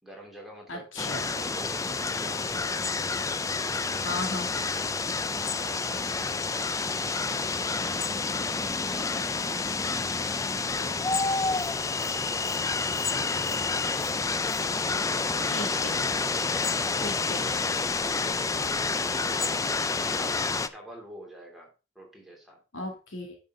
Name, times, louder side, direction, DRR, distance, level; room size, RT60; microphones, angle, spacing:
voice 1, 0.0-0.9 1.3-4.1 5.4-8.4 8.8-9.7 10.0-14.3 14.9-15.6 16.8-20.3 20.6-22.6, right 1 dB, ahead, -1 dB, 3.0 m, -46 dB
voice 2, 0.7-1.3 4.0-4.5 15.5-16.1 17.0-17.5 22.7-23.4, left 2 dB, 75° left, 2 dB, 2.4 m, -36 dB
sound 1, 1.0-20.7, left 4 dB, 15° left, 0.4 m, -29 dB
10.0 x 6.5 x 3.8 m, 0.31 s
head